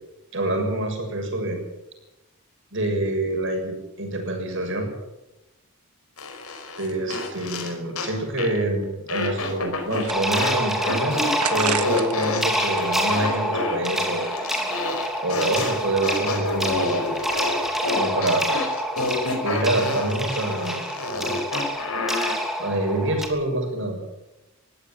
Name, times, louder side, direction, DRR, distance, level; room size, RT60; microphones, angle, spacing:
voice 1, 0.3-1.6 2.7-4.9 6.8-11.2 11.5-14.3 15.2-17.0 17.9-18.5 19.4-20.8 22.6-24.0, right 1 dB, 55° right, 3 dB, 7.0 m, -26 dB
sound 1, 6.2-8.1 8.4-8.6 9.1-10.5 10.8-22.4, left 2 dB, 80° left, 4.9 m, -29 dB
sound 2, 9.8-10.7 11.4-12.3 12.6-13.9, right 8 dB, 90° right, 1.6 m, -32 dB
sound 3, 10.1-23.3, equal, ahead, 2.9 m, -27 dB
22.5 x 16.0 x 9.1 m, 0.96 s
head